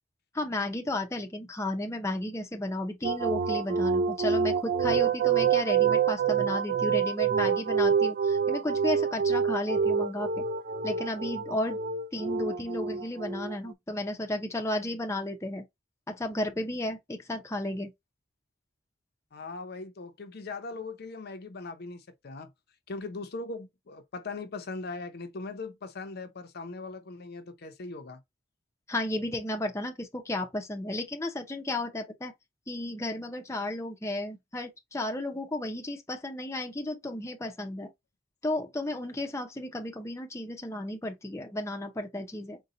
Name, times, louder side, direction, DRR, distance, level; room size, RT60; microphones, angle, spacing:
voice 1, 0.3-10.4 10.8-11.8 12.1-15.6 16.1-17.9 28.9-32.3 32.7-37.9 38.4-42.6, left 1 dB, 15° left, 0.6 m, -33 dB
sound 1, 3.0-13.7, right 6 dB, 50° right, 0.3 m, -27 dB
voice 2, 19.3-22.5 22.9-28.2, left 3 dB, 55° left, 0.6 m, -40 dB
4.2 x 2.2 x 3.8 m
head